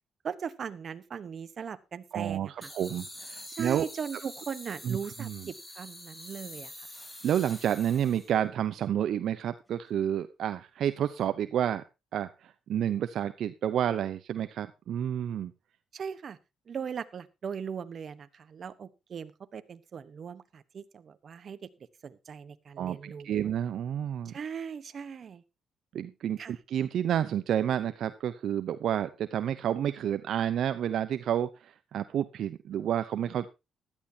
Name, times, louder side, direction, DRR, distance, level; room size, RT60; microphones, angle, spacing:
voice 1, 0.2-2.7 3.6-6.9 15.9-16.4 16.7-21.7 22.0-23.5 24.2-25.4 26.4-26.6, right 7 dB, 50° right, 13 dB, 1.1 m, -39 dB
voice 2, 2.1-3.8 4.8-5.5 7.2-11.8 12.1-15.5 22.8-24.3 25.9-33.5, right 10 dB, 70° right, 12 dB, 0.7 m, -30 dB
sound 1, 2.6-8.4, left 1 dB, 15° left, 3.0 m, -46 dB
16.0 x 12.0 x 2.8 m, 0.26 s
cardioid pair, 90°, 0 cm